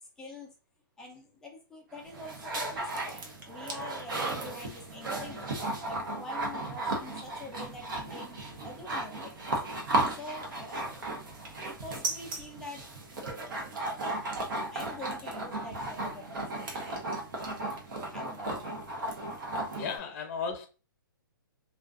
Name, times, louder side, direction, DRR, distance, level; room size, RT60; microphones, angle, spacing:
voice 1, 0.2-0.5 1.0-5.5 5.9-9.6 10.1-12.9 14.6-17.2 18.1-18.7, left 2 dB, 5° left, 0.4 m, -46 dB
sound 1, 1.9-20.0, right 2 dB, 70° right, 0.8 m, -35 dB
voice 2, 19.8-20.7, left 5 dB, 35° left, 0.7 m, -34 dB
2.4 x 2.3 x 2.4 m
hypercardioid pair, 160°, 12 cm